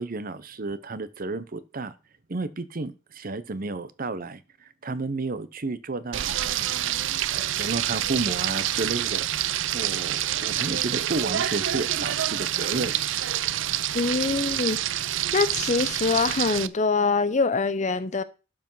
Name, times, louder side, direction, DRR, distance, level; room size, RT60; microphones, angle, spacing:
voice 1, 0.0-1.9 2.3-6.6 7.3-9.3 9.7-13.0, right 3 dB, 45° right, 0.8 m, -32 dB
Frying (food), 6.1-16.7, right 12 dB, 75° right, 0.5 m, -27 dB
voice 2, 13.9-14.8 15.3-18.2, left 4 dB, 40° left, 0.7 m, -24 dB
12.0 x 5.1 x 5.6 m
head